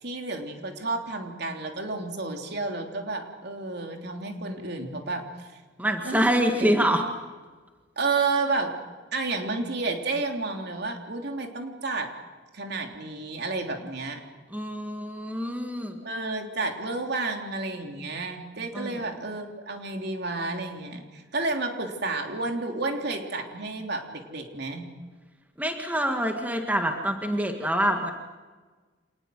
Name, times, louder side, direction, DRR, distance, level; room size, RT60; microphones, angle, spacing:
voice 1, 0.0-5.5 6.0-6.3 6.6-6.8 8.0-8.7 9.1-12.1 12.5-14.2 16.0-24.8, right 3 dB, 60° right, 3 dB, 3.3 m, -31 dB
voice 2, 5.8-7.0 14.5-16.0 18.7-19.1 25.6-28.1, equal, 10° right, 4 dB, 1.8 m, -26 dB
26.5 x 20.0 x 7.8 m, 1.4 s
head